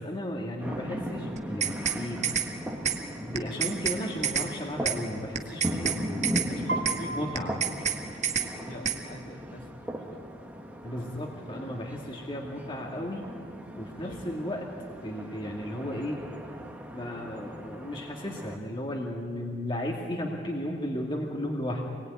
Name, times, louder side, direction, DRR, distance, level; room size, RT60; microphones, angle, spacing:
voice 1, 0.0-2.2 3.2-7.6 10.8-13.3 13.8-14.7 15.0-16.2 16.9-21.8, left 1 dB, 30° left, -1 dB, 2.3 m, -34 dB
sound 1, 0.6-18.6, equal, 10° right, 1.7 m, -38 dB
sound 2, 1.4-2.0 2.2-2.5 2.8-3.0 3.3-4.0 4.2-4.5 4.8-5.0 5.3-6.0 6.2-6.5 6.8-7.0 7.3-8.0 8.2-8.5 8.8-9.0, right 8 dB, 40° right, 1.7 m, -28 dB
voice 2, 6.3-10.2 11.2-11.3 14.0-14.4, left 1 dB, 55° left, -1 dB, 3.7 m, -45 dB
Piano, 6.7-8.7, right 1 dB, 70° right, 1.9 m, -37 dB
26.0 x 21.0 x 9.6 m, 2.3 s
head